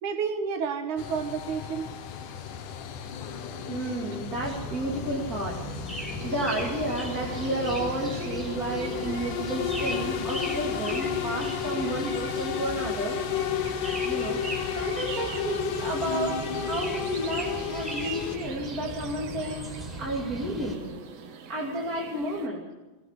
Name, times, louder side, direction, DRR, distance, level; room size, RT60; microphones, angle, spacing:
voice 1, 0.0-1.9 13.6-13.7 14.1-14.2, right 6 dB, 70° right, 7 dB, 3.0 m, -31 dB
sound 1, 1.0-18.4, left 8 dB, 80° left, 2.9 m, -33 dB
voice 2, 3.7-13.2 14.0-14.4 14.7-19.7 20.0-21.0 21.5-22.6, right 1 dB, 30° right, -4 dB, 3.1 m, -32 dB
sound 2, 4.4-20.8, right 1 dB, ahead, 4.6 m, -38 dB
sound 3, 6.2-22.5, right 7 dB, 85° right, 3.1 m, -43 dB
22.5 x 18.0 x 6.8 m, 1.2 s
omnidirectional pair, 3.6 m